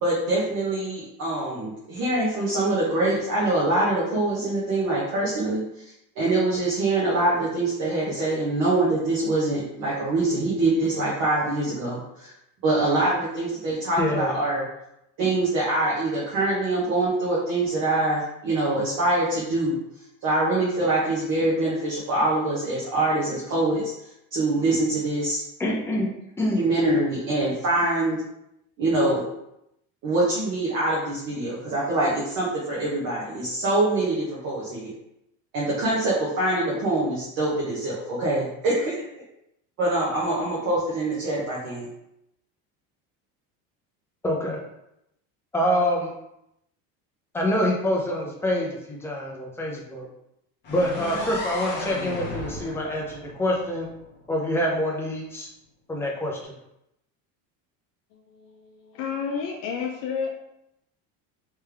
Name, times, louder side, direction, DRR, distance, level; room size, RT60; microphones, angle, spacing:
voice 1, 0.0-5.6 6.2-12.3 12.6-14.7 15.2-19.8 20.2-23.9 24.3-25.4 26.6-28.2 28.8-29.2 30.0-34.9 35.5-39.2 39.8-41.9, right 2 dB, 45° right, -6 dB, 1.0 m, -24 dB
voice 2, 14.0-14.4 25.6-26.1 26.4-26.6 44.2-44.6 45.5-46.1 47.3-50.1 50.7-53.9 54.3-55.5 55.9-56.5, equal, 5° left, -2 dB, 0.3 m, -26 dB
sound 1, 50.6-54.5, left 2 dB, 30° left, 0.9 m, -35 dB
voice 3, 58.1-60.3, left 6 dB, 55° left, 0 dB, 0.6 m, -31 dB
3.4 x 3.3 x 3.3 m, 0.82 s
cardioid pair, 175°, 38 cm